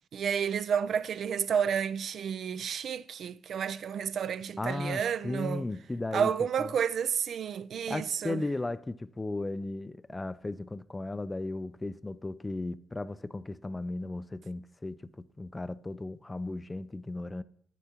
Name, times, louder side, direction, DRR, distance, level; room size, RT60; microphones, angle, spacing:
voice 1, 0.1-5.6 6.1-8.4, right 7 dB, 65° right, 0.3 m, -30 dB
voice 2, 4.6-6.3 6.6-6.7 7.9-17.4, left 2 dB, 20° left, 0.3 m, -36 dB
9.8 x 9.2 x 2.9 m
cardioid pair, 80°, 0 cm